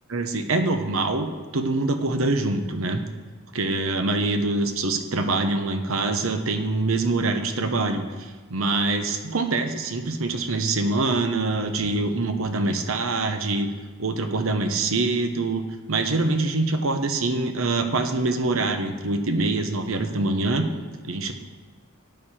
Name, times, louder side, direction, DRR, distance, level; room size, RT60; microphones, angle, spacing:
voice 1, 0.1-1.3 1.5-3.0 3.5-13.7 14.0-15.6 15.9-20.7 21.0-21.3, right 2 dB, 70° right, 7 dB, 1.0 m, -24 dB
11.5 x 8.9 x 4.4 m, 1.4 s
head